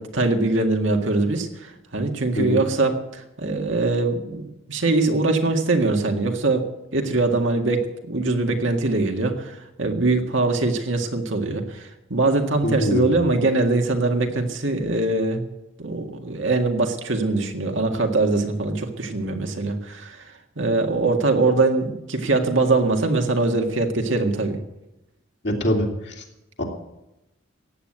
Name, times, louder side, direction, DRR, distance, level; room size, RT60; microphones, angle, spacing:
voice 1, 0.0-6.6 6.9-15.5 15.8-20.2 20.6-24.6, right 2 dB, 65° right, 3 dB, 1.9 m, -22 dB
voice 2, 12.6-13.2 25.4-26.2 26.6-26.7, equal, 55° left, 0 dB, 2.8 m, -24 dB
15.0 x 9.5 x 8.0 m, 0.93 s
head